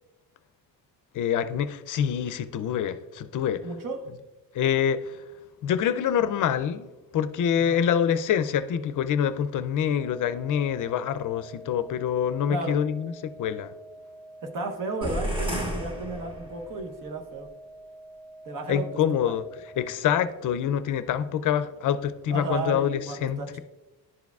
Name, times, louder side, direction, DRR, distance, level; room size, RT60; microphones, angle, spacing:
voice 1, 1.1-3.6 4.5-5.2 5.6-13.7 18.7-23.6, left 9 dB, 60° left, 12 dB, 0.4 m, -26 dB
voice 2, 3.6-4.1 7.6-7.8 12.5-12.8 14.4-17.5 18.4-19.4 22.3-23.6, right 3 dB, 60° right, 3 dB, 1.1 m, -34 dB
sound 1, 9.9-20.0, right 1 dB, 20° left, 0.8 m, -47 dB
sound 2, 15.0-16.9, equal, 15° right, 1.0 m, -31 dB
11.0 x 4.6 x 2.3 m, 1.1 s
cardioid pair, 130°, 37 cm